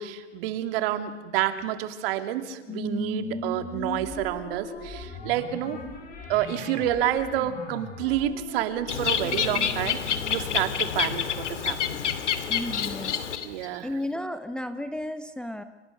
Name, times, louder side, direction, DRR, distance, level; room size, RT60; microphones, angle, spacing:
voice 1, 0.0-5.8 6.3-11.8 13.4-13.9, right 11 dB, 55° right, 8 dB, 2.7 m, -29 dB
Whale from Wales, 2.7-11.4, left 2 dB, 25° left, 7.3 m, -39 dB
Bird, 8.9-13.7, left 8 dB, 85° left, 2.8 m, -28 dB
voice 2, 12.5-13.2 13.5-15.6, left 1 dB, ahead, 8 dB, 0.9 m, -33 dB
29.0 x 26.0 x 6.7 m, 1.3 s
hypercardioid pair, 125°, 35 cm